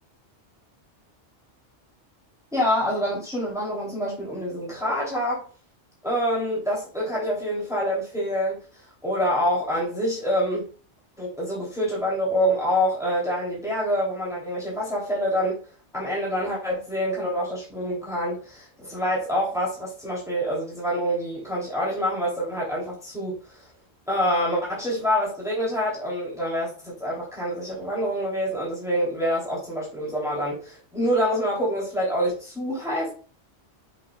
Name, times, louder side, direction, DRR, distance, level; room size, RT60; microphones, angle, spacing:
voice 1, 2.5-5.5 6.0-8.6 9.0-10.6 11.2-15.6 15.9-23.4 24.1-33.1, equal, 5° right, 3.0 m, -26 dB
7.4 x 5.8 x 2.3 m
omnidirectional pair, 1.2 m